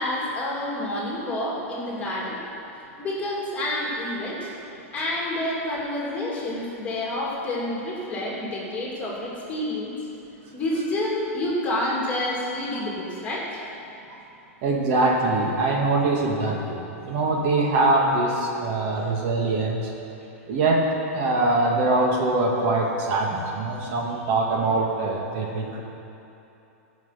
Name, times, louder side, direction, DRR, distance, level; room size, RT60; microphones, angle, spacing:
voice 1, 0.0-2.4 3.0-4.5 4.9-10.0 10.5-13.5, left 1 dB, 15° left, -5 dB, 2.8 m, -28 dB
voice 2, 14.6-19.9 20.5-20.9 21.1-25.8, right 2 dB, 50° right, -1 dB, 1.8 m, -23 dB
15.0 x 6.1 x 5.9 m, 2.9 s
hypercardioid pair, 135°, 8 cm